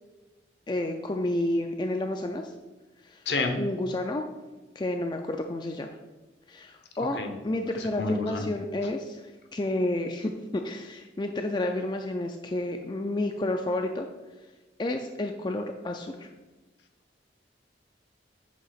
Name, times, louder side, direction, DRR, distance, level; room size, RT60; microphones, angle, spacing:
voice 1, 0.7-2.5 3.0-3.2 3.6-4.2 4.8-5.9 6.5-14.1 14.8-16.3, left 1 dB, 25° left, 4 dB, 0.4 m, -30 dB
voice 2, 3.3-3.6 7.0-7.3 7.8-8.5, left 3 dB, 65° left, 5 dB, 0.8 m, -29 dB
8.2 x 2.9 x 5.7 m, 1.2 s
head